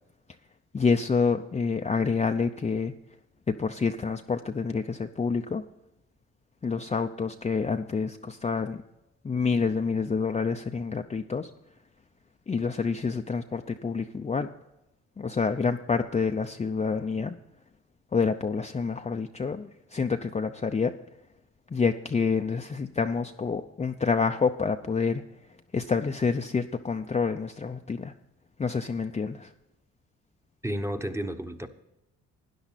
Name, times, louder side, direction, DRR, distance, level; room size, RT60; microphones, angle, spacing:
voice 1, 0.7-2.9 3.5-5.6 6.6-8.8 9.2-11.5 12.5-14.5 15.2-17.3 18.1-20.9 21.7-25.2 25.7-28.1 28.6-29.5, left 5 dB, 20° left, 0.6 m, -28 dB
voice 2, 30.6-31.7, equal, 10° right, 1.1 m, -31 dB
13.0 x 10.0 x 4.1 m
cardioid pair, 90°, 30 cm